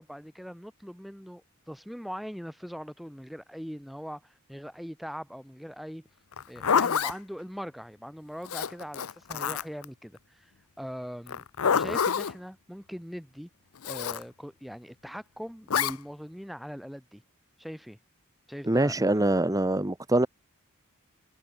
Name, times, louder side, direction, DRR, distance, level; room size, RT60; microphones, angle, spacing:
voice 1, 0.0-6.1 6.5-10.5 10.8-11.4 11.7-13.5 13.8-17.2 17.6-18.0 18.5-19.3, equal, ahead, 4.2 m, -41 dB
Zipper (clothing), 6.3-7.2 8.5-9.9 11.3-12.3 13.8-14.2 15.7-16.0, left 7 dB, 70° left, 0.7 m, -27 dB
voice 2, 18.6-20.3, right 1 dB, 15° right, 1.0 m, -24 dB
head